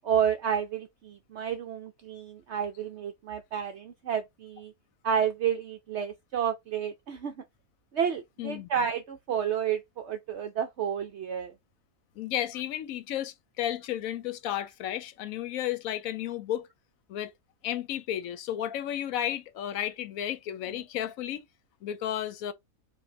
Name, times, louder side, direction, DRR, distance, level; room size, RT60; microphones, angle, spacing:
voice 1, 0.0-4.7 5.0-7.3 7.9-11.5, right 8 dB, 65° right, 0.7 m, -30 dB
voice 2, 8.4-8.7 12.2-16.7 17.1-17.3 17.6-21.5 21.8-22.5, left 11 dB, 75° left, 1.0 m, -33 dB
5.0 x 2.5 x 2.7 m
omnidirectional pair, 1.5 m